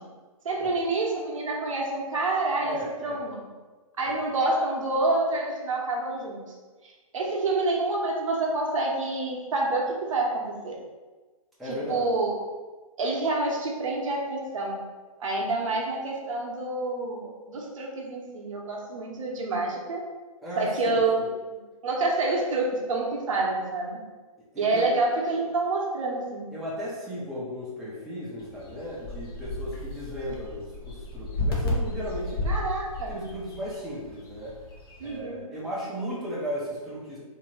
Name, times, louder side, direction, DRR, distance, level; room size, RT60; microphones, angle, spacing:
voice 1, 0.4-3.4 4.0-6.4 6.8-10.7 11.6-12.3 13.0-14.8 15.2-20.0 20.6-21.3 21.8-24.0 24.6-26.5 32.4-33.2 35.0-35.4, right 2 dB, 60° right, -2 dB, 0.8 m, -28 dB
voice 2, 2.6-3.2 11.6-12.1 20.4-21.3 24.5-24.8 26.5-32.4 33.1-34.5 35.0-37.2, equal, ahead, -9 dB, 0.5 m, -35 dB
sound 1, 28.4-35.2, left 1 dB, 40° left, 0.7 m, -33 dB
2.7 x 2.6 x 3.0 m, 1.3 s
figure-of-eight pair, 130°, 19 cm